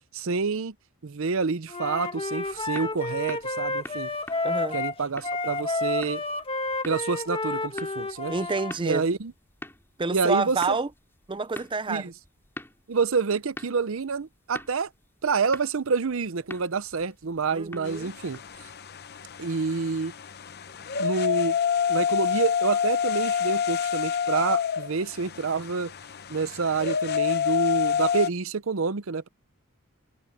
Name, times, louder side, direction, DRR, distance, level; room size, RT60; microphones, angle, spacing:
voice 1, 0.1-0.7 1.0-4.1 4.7-6.2 6.8-8.3 8.8-9.3 10.1-10.8 11.9-12.1 12.9-14.9 15.2-18.4 19.4-20.1 21.0-21.6 21.9-25.9 26.3-29.3, right 5 dB, 65° right, 0.7 m, -28 dB
Wind instrument woodwind instrument, 1.7-8.7, left 2 dB, 25° left, 1.6 m, -30 dB
sound 1, 2.2-18.7, left 1 dB, 10° left, 3.7 m, -46 dB
voice 2, 4.4-4.8 8.3-9.0 10.0-10.9 11.3-12.1 17.5-18.1, right 3 dB, 25° right, 0.5 m, -28 dB
sound 2, 17.8-28.3, left 7 dB, 50° left, 0.7 m, -28 dB
head